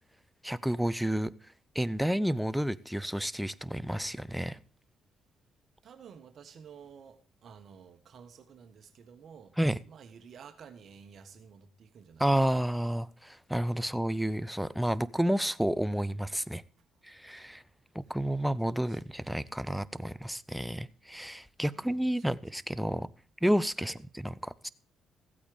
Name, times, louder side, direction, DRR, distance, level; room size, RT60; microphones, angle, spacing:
voice 1, 0.4-1.3 1.7-4.6 9.6-9.8 12.2-16.6 17.0-17.6 17.9-23.1 23.4-24.7, equal, 5° right, 0.7 m, -30 dB
voice 2, 5.8-9.5 9.9-12.3 13.8-14.0 18.7-19.0 21.7-22.4 23.8-24.0, right 7 dB, 60° right, 1.5 m, -52 dB
15.0 x 8.6 x 5.1 m
cardioid pair, 90°, 0 cm